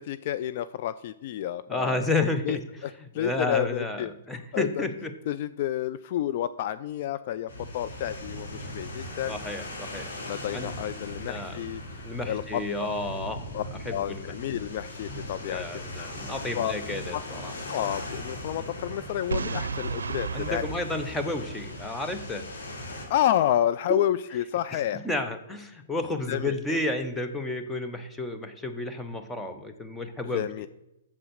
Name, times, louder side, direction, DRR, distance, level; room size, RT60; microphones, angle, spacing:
voice 1, 0.0-2.0 2.4-2.6 2.8-4.1 4.5-4.9 5.3-9.3 10.3-11.8 12.3-12.6 13.5-13.6 13.9-16.1 16.5-16.7 17.1-17.2 17.7-20.6 23.1-25.1 26.3-26.8 30.3-30.7, left 11 dB, 50° left, 14 dB, 0.3 m, -30 dB
voice 2, 1.7-2.6 3.2-5.1 9.3-10.1 10.5-10.7 11.2-11.6 12.0-13.5 13.8-14.3 15.4-17.5 20.3-22.4 24.7-30.5, left 2 dB, 5° left, 6 dB, 1.0 m, -31 dB
sound 1, 7.5-23.1, left 1 dB, 75° left, 2.7 m, -39 dB
Boom, 19.3-22.2, right 5 dB, 80° right, 0.5 m, -34 dB
7.6 x 7.2 x 6.4 m, 0.92 s
hypercardioid pair, 125°, 0 cm